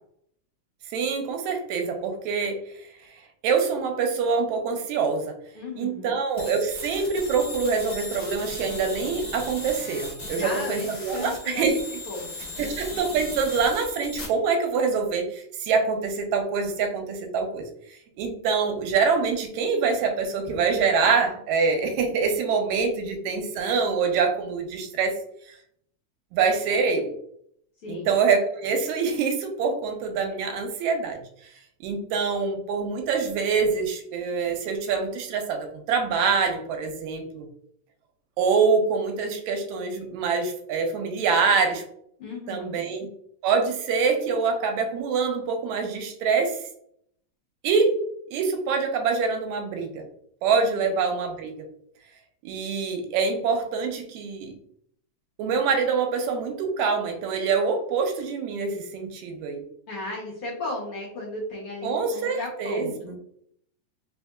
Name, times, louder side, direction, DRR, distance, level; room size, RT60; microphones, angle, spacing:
voice 1, 0.9-2.9 3.4-5.4 5.7-11.8 12.6-25.2 26.3-27.1 27.9-31.2 31.8-37.5 38.4-41.8 42.5-43.1 43.4-46.7 47.6-48.0 48.3-50.1 50.4-51.7 52.4-54.5 55.4-59.6 61.8-63.2, right 5 dB, 85° right, 4 dB, 1.9 m, -25 dB
voice 2, 5.5-6.1 10.2-11.8 12.1-12.7 27.8-28.1 42.2-42.8 50.8-50.9 59.9-63.2, left 2 dB, 65° left, -4 dB, 1.5 m, -35 dB
sound 1, 6.4-14.3, left 2 dB, 50° left, 0.8 m, -37 dB
4.1 x 3.5 x 2.3 m, 0.69 s
omnidirectional pair, 3.4 m